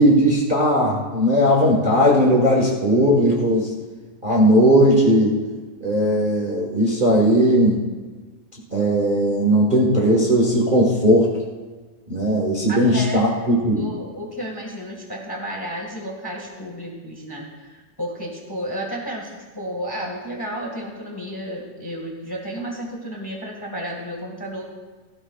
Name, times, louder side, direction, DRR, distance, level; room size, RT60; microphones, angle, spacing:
voice 1, 0.0-3.7 4.2-5.3 5.8-7.8 8.7-11.3 12.1-13.8, equal, 85° right, -4 dB, 0.4 m, -17 dB
voice 2, 12.7-24.6, equal, 15° left, -1 dB, 0.9 m, -32 dB
18.0 x 15.5 x 2.4 m, 1.4 s
omnidirectional pair, 3.9 m